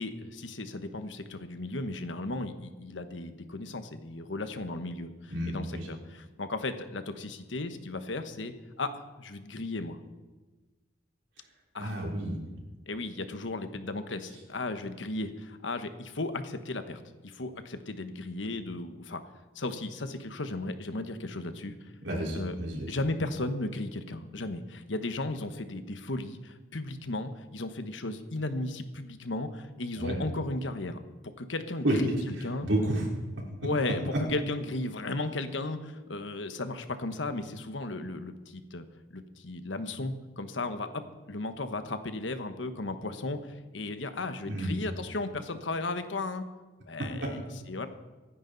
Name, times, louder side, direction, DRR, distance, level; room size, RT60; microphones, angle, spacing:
voice 1, 0.0-10.0 11.7-11.9 12.9-19.2 19.5-21.9 22.3-22.6 22.9-31.0 31.4-32.1 32.4-32.7 33.6-38.8 39.1-46.4 46.9-47.4 47.7-47.9, left 2 dB, 90° left, 9 dB, 1.2 m, -35 dB
voice 2, 5.3-5.9 11.8-12.4 22.0-22.9 30.0-30.2 31.8-32.0 32.6-33.0 33.3-33.4 44.4-44.7 47.0-47.3, right 1 dB, 90° right, -2 dB, 4.3 m, -30 dB
25.5 x 10.0 x 4.0 m, 1.2 s
head